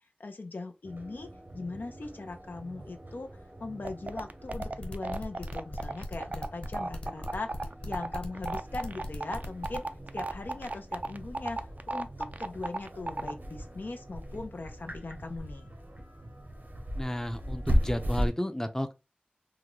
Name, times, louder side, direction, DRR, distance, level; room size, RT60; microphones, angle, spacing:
voice 1, 0.2-7.5 7.9-9.8 10.1-15.7, left 3 dB, 80° left, 0.5 m, -40 dB
sound 1, 0.8-18.3, equal, 75° right, 0.9 m, -38 dB
sound 2, 3.8-13.3, right 2 dB, 55° right, 0.3 m, -34 dB
sound 3, 4.5-9.8, left 2 dB, 40° left, 1.2 m, -40 dB
voice 2, 17.0-18.9, left 1 dB, 15° left, 0.5 m, -32 dB
3.5 x 2.1 x 3.0 m
wide cardioid pair, 55°, 3 cm